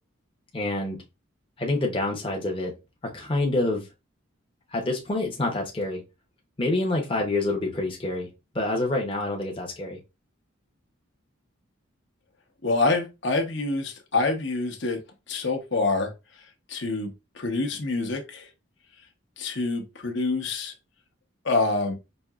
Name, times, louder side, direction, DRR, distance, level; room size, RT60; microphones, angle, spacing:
voice 1, 0.5-1.0 1.6-2.7 3.1-3.9 4.7-6.0 6.6-8.3 8.5-10.0, left 2 dB, 25° left, 0.7 m, -27 dB
voice 2, 12.6-15.0 15.3-16.1 16.7-17.1 17.4-18.5 19.4-20.7 21.4-21.9, left 3 dB, 60° left, 0.9 m, -26 dB
5.2 x 2.8 x 2.3 m
head